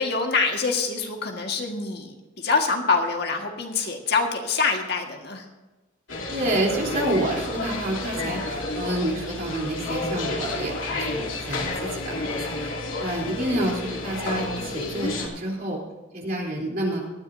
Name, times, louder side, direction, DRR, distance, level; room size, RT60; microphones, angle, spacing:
voice 1, 0.0-5.4, left 4 dB, 55° left, 2 dB, 1.8 m, -25 dB
sound 1, 6.1-15.3, left 2 dB, 85° left, 2.6 m, -30 dB
voice 2, 6.3-12.7 13.0-15.8 16.1-17.0, right 1 dB, 45° right, -3 dB, 3.6 m, -28 dB
19.0 x 13.5 x 2.7 m, 1.2 s
head